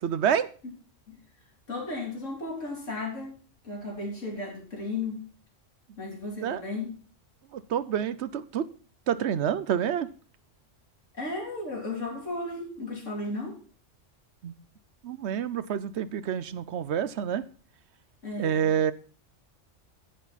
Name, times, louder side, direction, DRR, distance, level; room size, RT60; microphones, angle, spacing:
voice 1, 0.0-0.5 6.4-6.6 7.5-8.7 9.1-10.1 14.4-14.5 15.0-17.4 18.4-18.9, right 9 dB, 65° right, 15 dB, 0.9 m, -28 dB
voice 2, 1.7-3.4 3.6-5.2 6.0-6.9 11.1-13.6 18.2-18.7, left 2 dB, 85° left, 0 dB, 3.4 m, -34 dB
10.0 x 9.5 x 4.0 m, 0.39 s
omnidirectional pair, 1.3 m